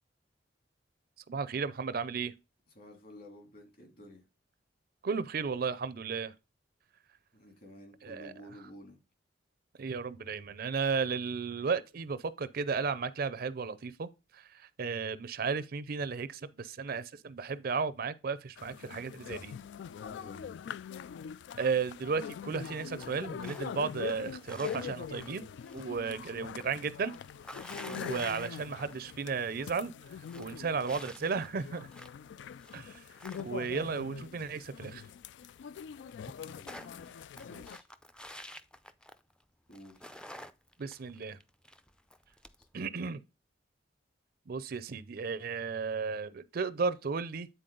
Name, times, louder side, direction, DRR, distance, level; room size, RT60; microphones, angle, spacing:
voice 1, 1.3-2.3 5.0-6.3 8.0-8.3 9.8-19.5 21.6-25.4 25.7-27.1 27.9-29.9 30.4-31.9 32.7-33.0 33.4-35.0 40.8-41.4 42.7-43.2 44.5-47.5, right 5 dB, 55° right, 0.5 m, -34 dB
voice 2, 2.7-4.2 7.3-9.0 19.9-20.6 27.7-28.0 36.4-37.1 37.4-37.9 39.7-40.0, left 1 dB, 55° left, 3.2 m, -52 dB
sound 1, 18.6-37.8, left 7 dB, 70° left, 0.3 m, -43 dB
sound 2, 23.0-23.7 24.0-25.9 26.2-29.1 29.5-29.6 30.0-32.2 32.6-33.8 35.4-35.5 35.7-35.8 36.1-39.4 39.7-42.7, left 1 dB, 5° left, 0.4 m, -49 dB
9.2 x 4.1 x 3.8 m
head